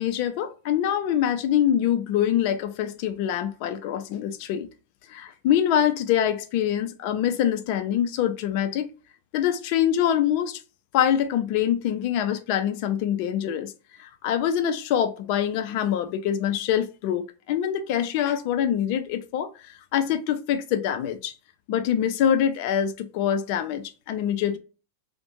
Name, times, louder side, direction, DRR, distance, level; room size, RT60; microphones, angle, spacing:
voice 1, 0.0-4.7 5.1-8.9 9.3-10.6 10.9-13.7 14.0-21.3 21.7-24.6, left 10 dB, 55° left, 0.4 m, -25 dB
2.5 x 2.1 x 3.0 m
hypercardioid pair, 105°, 0 cm